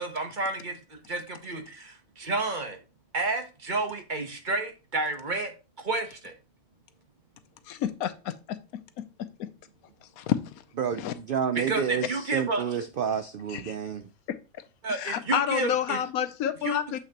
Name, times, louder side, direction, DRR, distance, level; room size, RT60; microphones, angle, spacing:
voice 1, 0.0-2.8 3.1-5.5 5.8-6.3 11.5-12.8 14.8-16.0 16.6-17.0, right 3 dB, 35° right, 1.1 m, -31 dB
voice 2, 7.7-8.6 10.2-10.4 11.0-11.1 13.5-13.7 14.3-14.4 14.9-17.0, left 10 dB, 90° left, 1.1 m, -29 dB
voice 3, 10.8-14.0, right 7 dB, 65° right, 0.5 m, -29 dB
8.0 x 5.8 x 2.9 m
omnidirectional pair, 1.5 m